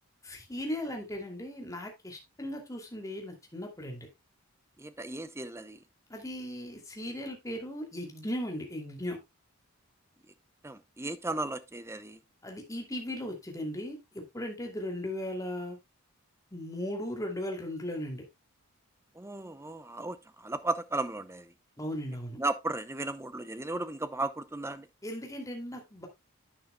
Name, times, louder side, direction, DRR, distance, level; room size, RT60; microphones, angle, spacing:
voice 1, 0.2-4.1 6.1-9.2 12.4-15.8 16.5-18.2 21.8-22.4 25.0-26.1, left 1 dB, 15° left, 2.6 m, -37 dB
voice 2, 4.8-5.8 10.6-12.2 19.2-21.5 22.4-24.9, right 2 dB, 10° right, 0.7 m, -35 dB
11.0 x 9.1 x 2.2 m
head